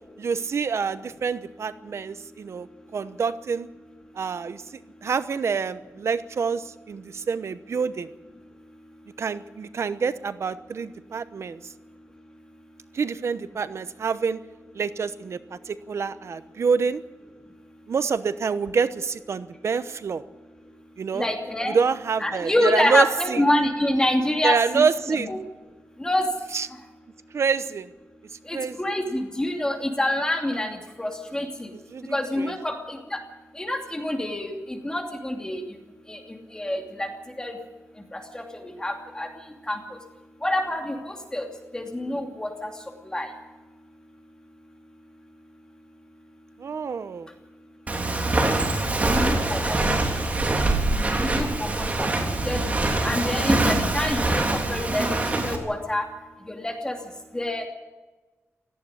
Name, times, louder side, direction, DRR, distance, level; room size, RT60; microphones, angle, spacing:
voice 1, 0.2-2.7 2.9-3.7 4.1-4.6 5.0-8.1 9.2-11.6 12.9-14.4 14.7-17.0 17.9-20.2 21.0-21.3 21.7-23.4 24.4-25.3 26.5-26.7 27.3-27.9 28.5-28.8 31.9-32.5 46.6-47.3 49.2-49.8, right 5 dB, 65° right, 13 dB, 0.9 m, -27 dB
voice 2, 21.1-21.8 22.2-24.8 25.3-25.4 26.0-26.3 28.5-31.7 32.1-33.2 33.6-35.6 36.1-36.2 36.5-37.1 37.4-37.5 38.1-39.3 39.7-39.8 40.4-41.5 41.7-42.5 43.1-43.3 49.1-49.8 51.2-52.1 52.4-52.6 53.0-56.1 56.5-57.0 57.3-57.6, left 1 dB, 15° left, 3 dB, 2.7 m, -26 dB
Walk footsteps, 47.9-55.6, right 2 dB, 30° right, 3.3 m, -24 dB
18.0 x 14.5 x 9.9 m, 1.2 s
wide cardioid pair, 145°, 5 cm